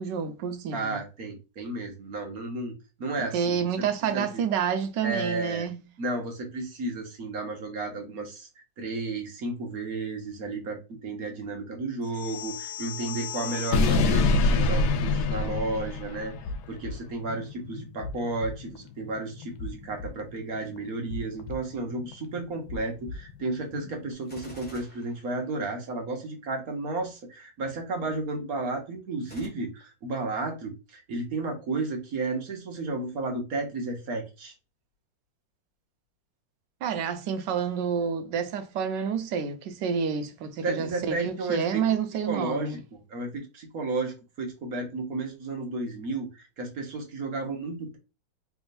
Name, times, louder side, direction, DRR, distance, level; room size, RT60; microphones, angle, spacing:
voice 1, 0.0-1.0 3.3-5.9 36.8-42.8, right 7 dB, 70° right, 1.3 m, -29 dB
voice 2, 0.7-3.6 4.1-4.4 5.0-5.7 6.0-8.5 8.8-16.3 16.7-34.5 40.6-41.8 42.3-48.0, right 3 dB, 55° right, 1.4 m, -33 dB
sound 1, 12.1-16.5, left 3 dB, 70° left, 1.1 m, -25 dB
sound 2, 15.7-24.1, left 4 dB, 90° left, 1.4 m, -42 dB
Gunshot gunfire, 24.2-26.0 29.2-29.5, left 1 dB, 5° left, 1.1 m, -48 dB
3.5 x 3.5 x 2.5 m
omnidirectional pair, 2.0 m